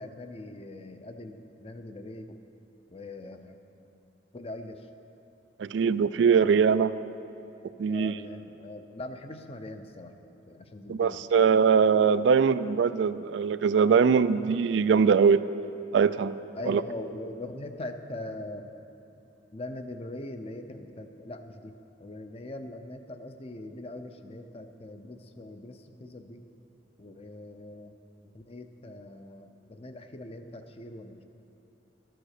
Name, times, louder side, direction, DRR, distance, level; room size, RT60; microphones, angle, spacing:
voice 1, 0.0-2.4 2.9-3.6 4.3-4.9 7.9-10.2 10.5-11.2 16.6-18.7 19.5-26.4 27.0-27.9 28.3-31.2, left 1 dB, 30° left, 7 dB, 0.6 m, -41 dB
voice 2, 5.6-6.9 7.8-8.1 10.9-15.5 15.9-16.3 16.7-16.8, right 6 dB, 70° right, 14 dB, 0.3 m, -22 dB
13.0 x 7.8 x 6.5 m, 2.9 s
head